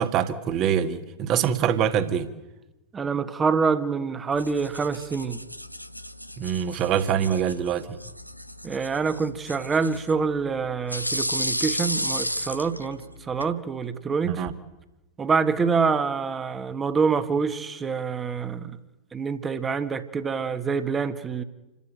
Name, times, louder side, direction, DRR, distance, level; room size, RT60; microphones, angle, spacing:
voice 1, 0.0-2.3 6.4-8.0 14.2-14.5, right 8 dB, 35° right, 1.9 m, -24 dB
voice 2, 2.9-5.4 8.6-14.4 15.2-18.7 19.1-21.4, right 5 dB, 20° right, 1.6 m, -26 dB
sound 1, 4.3-13.5, equal, 90° left, 0.7 m, -34 dB
28.5 x 12.5 x 9.1 m
figure-of-eight pair, 90°, 0 cm